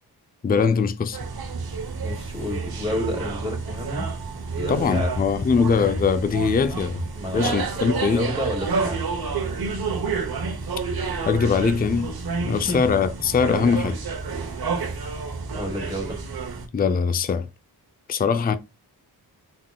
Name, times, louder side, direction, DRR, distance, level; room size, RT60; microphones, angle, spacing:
voice 1, 0.4-1.2 4.7-7.0 7.3-8.3 11.3-12.1 12.5-14.0 16.7-17.5 18.1-18.5, left 5 dB, 25° left, 0.4 m, -21 dB
sound 1, 1.1-16.7, right 4 dB, 65° right, 0.9 m, -29 dB
voice 2, 2.0-4.1 4.6-5.1 7.1-9.1 12.4-12.8 15.5-16.2, left 1 dB, 15° right, 2.1 m, -31 dB
3.8 x 3.5 x 2.2 m
cardioid pair, 55°, 40 cm